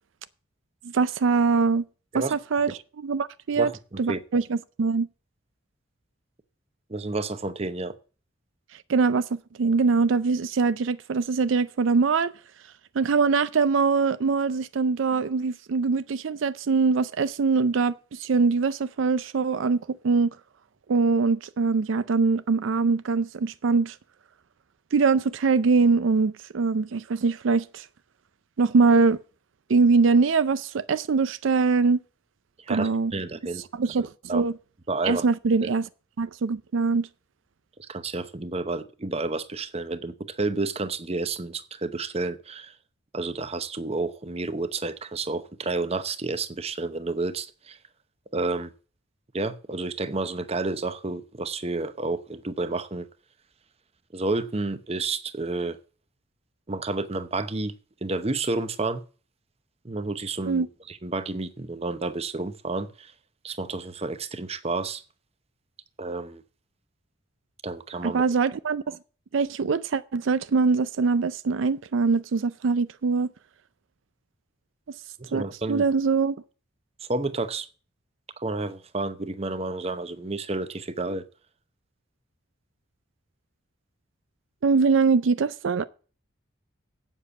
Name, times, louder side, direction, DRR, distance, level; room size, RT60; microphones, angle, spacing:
voice 1, 0.8-1.8 2.1-3.7 4.0-5.1 8.9-9.3 9.6-12.3 13.0-20.3 20.9-24.0 24.9-27.9 28.6-29.2 29.7-32.0 32.7-33.1 33.7-34.5 35.0-35.9 36.2-37.1 60.5-60.7 68.0-69.0 69.3-73.3 75.3-76.4 84.6-85.8, right 4 dB, 75° right, 0.4 m, -23 dB
voice 2, 3.6-4.4 6.9-7.9 32.7-33.6 34.3-34.4 34.9-35.3 35.6-35.7 37.8-42.7 43.1-47.8 48.3-48.7 49.3-53.1 54.1-55.8 56.7-57.7 58.0-59.0 59.8-63.1 63.4-65.0 66.0-66.4 67.6-68.2 75.2-75.8 77.0-77.7 78.4-81.3, right 3 dB, 30° right, 0.8 m, -30 dB
8.4 x 7.4 x 7.1 m
head